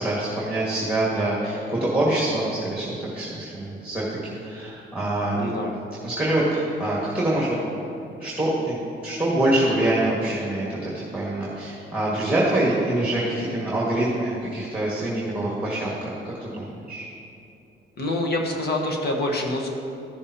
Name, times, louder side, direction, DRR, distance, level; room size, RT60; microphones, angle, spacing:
voice 1, 0.0-5.5 6.0-7.6 8.2-16.1 16.4-17.1, right 1 dB, 5° right, -6 dB, 1.9 m, -25 dB
voice 2, 5.4-5.7 18.0-19.7, left 1 dB, 55° left, 1 dB, 1.4 m, -26 dB
13.5 x 6.9 x 2.9 m, 2.7 s
cardioid pair, 90°, 20 cm